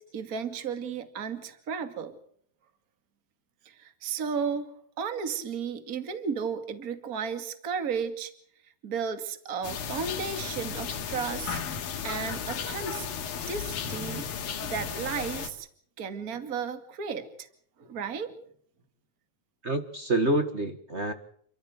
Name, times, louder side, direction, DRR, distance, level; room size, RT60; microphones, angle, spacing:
voice 1, 0.1-2.1 3.7-8.3 8.8-11.6 12.0-13.1 13.5-14.3 14.6-15.7 16.0-17.5 17.8-18.3, right 6 dB, 30° right, 8 dB, 2.1 m, -34 dB
sound 1, 9.6-15.5, left 7 dB, 80° left, 3.9 m, -34 dB
voice 2, 19.6-21.1, right 2 dB, 55° right, 7 dB, 0.7 m, -27 dB
29.0 x 14.0 x 7.9 m, 0.63 s
omnidirectional pair, 4.1 m